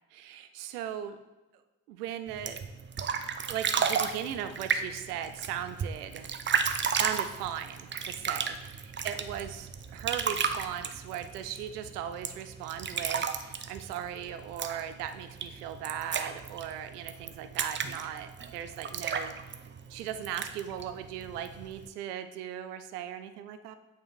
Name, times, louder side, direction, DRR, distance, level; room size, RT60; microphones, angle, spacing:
voice 1, 0.1-1.2 1.9-2.6 3.5-6.3 6.9-19.6 19.9-23.7, right 10 dB, 85° right, 10 dB, 0.5 m, -38 dB
sound 1, 2.3-21.9, right 6 dB, 25° right, 0.5 m, -34 dB
8.5 x 3.1 x 4.6 m, 1.1 s
figure-of-eight pair, 40°, 45 cm